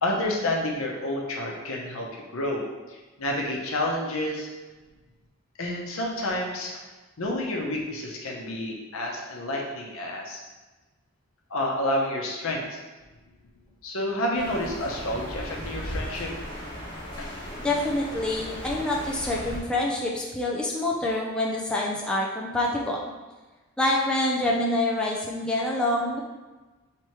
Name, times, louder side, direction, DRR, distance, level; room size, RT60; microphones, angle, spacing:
voice 1, 0.0-4.5 5.6-6.7 7.2-10.4 11.5-12.8 13.8-16.3 17.2-17.3, left 1 dB, 85° left, -1 dB, 0.8 m, -29 dB
sound 1, 14.3-19.6, equal, 25° left, 1.3 m, -36 dB
voice 2, 17.6-23.0 23.8-26.2, left 1 dB, 5° left, -4 dB, 0.4 m, -26 dB
3.3 x 3.1 x 4.5 m, 1.2 s
head